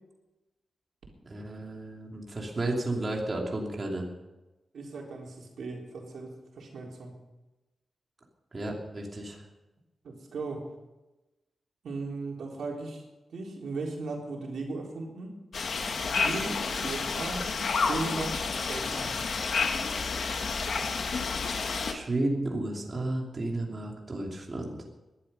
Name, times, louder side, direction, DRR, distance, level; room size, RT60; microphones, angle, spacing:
voice 1, 1.3-4.1 8.5-9.4 21.9-24.8, right 2 dB, 30° right, -1 dB, 2.8 m, -32 dB
voice 2, 4.7-7.2 10.0-10.7 11.8-13.0 13.3-15.4 16.0-17.5 17.9-18.4 18.7-19.2, right 3 dB, 85° right, -1 dB, 3.9 m, -37 dB
sound 1, 15.5-21.9, left 4 dB, 65° left, 1.8 m, -30 dB
20.5 x 11.5 x 5.5 m, 1.0 s
wide cardioid pair, 125°, 0 cm